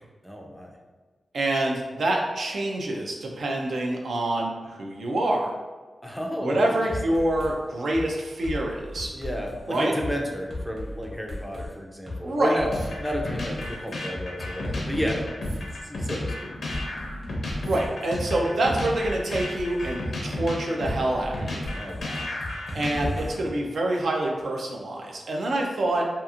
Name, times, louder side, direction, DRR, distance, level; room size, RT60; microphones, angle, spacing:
voice 1, 0.2-0.7 6.0-6.8 7.1-7.2 9.1-12.7 13.0-15.3 15.8-16.5 21.7-22.3, equal, ahead, 0 dB, 0.4 m, -32 dB
voice 2, 1.3-5.5 6.4-9.1 9.7-9.9 12.2-12.6 17.7-21.6 22.7-26.1, right 1 dB, 75° right, 0 dB, 0.4 m, -26 dB
sound 1, 6.9-7.5 7.9-8.1 8.4-10.1 10.5-11.7 12.1-12.2 12.6-15.8 16.2-16.3 16.7-18.4 18.8-19.9 20.3-20.5 20.8-23.3, left 1 dB, 30° right, 0.8 m, -36 dB
sound 2, 12.7-23.5, left 1 dB, 70° left, 0.6 m, -33 dB
2.8 x 2.4 x 2.4 m, 1.4 s
wide cardioid pair, 90°, 0 cm